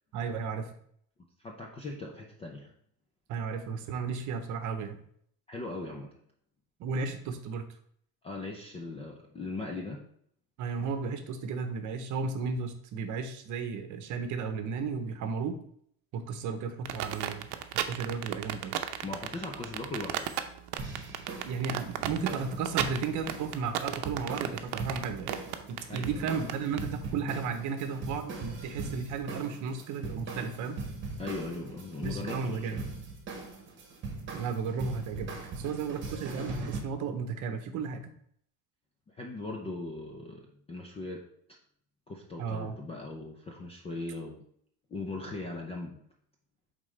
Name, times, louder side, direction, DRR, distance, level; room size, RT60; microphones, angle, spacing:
voice 1, 0.1-0.7 3.3-5.0 6.8-7.6 10.6-15.6 16.1-17.5 17.9-18.7 21.5-25.4 25.7-30.8 32.0-32.8 34.3-35.3 35.6-38.1 42.4-42.8, right 5 dB, 45° right, 7 dB, 0.8 m, -34 dB
voice 2, 1.4-2.7 5.5-6.1 8.2-10.0 19.0-20.3 25.9-26.4 31.2-32.8 39.1-41.2 42.1-44.4 44.9-46.0, left 2 dB, 15° left, 0 dB, 0.3 m, -39 dB
sound 1, 16.9-26.8, right 13 dB, 75° right, 0.7 m, -33 dB
sound 2, 20.8-36.8, right 3 dB, 25° right, 1.1 m, -40 dB
8.5 x 3.8 x 3.2 m, 0.65 s
cardioid pair, 155°, 43 cm